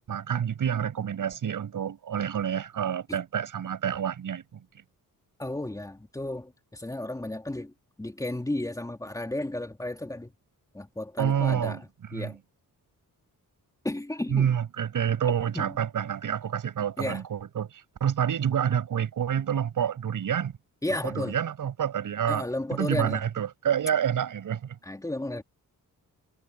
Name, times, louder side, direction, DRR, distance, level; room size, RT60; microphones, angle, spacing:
voice 1, 0.0-4.6 11.2-11.8 12.1-12.4 14.3-20.5 21.0-22.4 22.7-24.8, right 9 dB, 65° right, 7.1 m, -28 dB
voice 2, 5.4-7.7 8.0-10.3 10.7-12.4 13.8-14.5 15.5-15.7 17.0-17.2 20.8-21.4 22.3-23.2 24.8-25.4, left 1 dB, 10° left, 2.9 m, -33 dB
wide cardioid pair, 165°, 35 cm